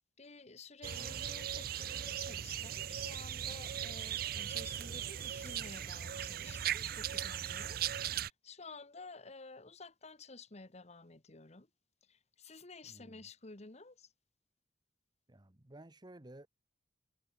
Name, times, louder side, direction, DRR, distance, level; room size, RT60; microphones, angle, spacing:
voice 1, 0.2-7.8 8.4-11.7 12.1-14.1, left 3 dB, 40° left, 1.5 m, -52 dB
sound 1, 0.8-8.3, right 10 dB, 55° right, 0.6 m, -38 dB
voice 2, 0.9-1.4 12.8-13.2 15.3-16.5, right 1 dB, 25° right, 1.2 m, -55 dB
head